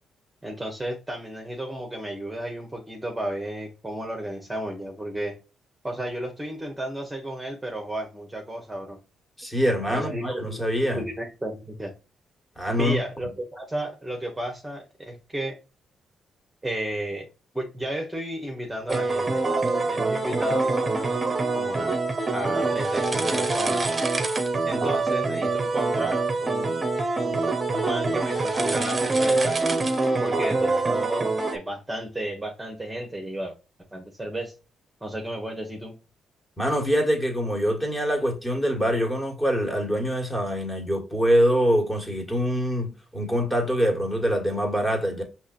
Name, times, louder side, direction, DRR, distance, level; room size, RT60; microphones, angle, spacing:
voice 1, 0.4-5.3 5.8-9.0 9.9-10.6 10.9-11.9 12.8-15.6 16.6-17.3 17.5-19.6 19.9-21.2 21.5-21.9 22.3-24.0 24.6-26.9 27.2-29.6 30.2-33.5 33.9-34.5 35.0-35.9, right 1 dB, 10° right, 1.2 m, -33 dB
voice 2, 9.4-11.0 12.6-13.0 36.6-45.2, equal, 10° left, 1.8 m, -24 dB
sound 1, 18.9-31.6, right 3 dB, 25° right, 0.9 m, -25 dB
5.4 x 3.0 x 2.5 m
cardioid pair, 85°, 0 cm